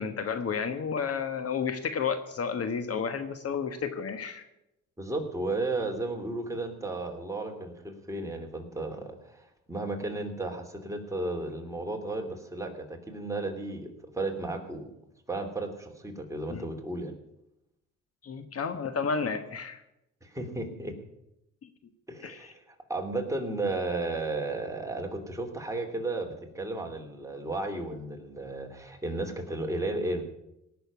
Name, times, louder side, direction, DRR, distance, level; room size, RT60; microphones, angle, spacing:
voice 1, 0.0-4.4 16.5-16.6 18.2-19.8 22.2-22.5, left 6 dB, 50° left, 9 dB, 1.3 m, -31 dB
voice 2, 5.0-14.9 15.3-17.1 20.2-20.9 22.1-30.2, right 2 dB, 10° right, 2 dB, 3.0 m, -34 dB
18.0 x 6.9 x 9.5 m, 0.87 s
cardioid pair, 90°, 30 cm